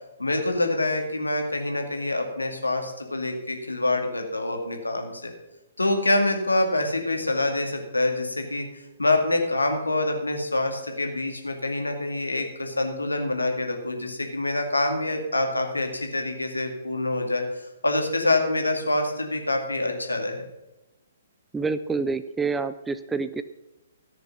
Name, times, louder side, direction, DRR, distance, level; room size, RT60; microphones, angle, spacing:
voice 1, 0.2-5.3 5.8-20.5, left 2 dB, 80° left, 3 dB, 2.2 m, -26 dB
voice 2, 21.5-23.4, right 4 dB, 10° right, 12 dB, 0.4 m, -27 dB
14.0 x 6.8 x 5.9 m, 1.0 s
figure-of-eight pair, 125°, 0 cm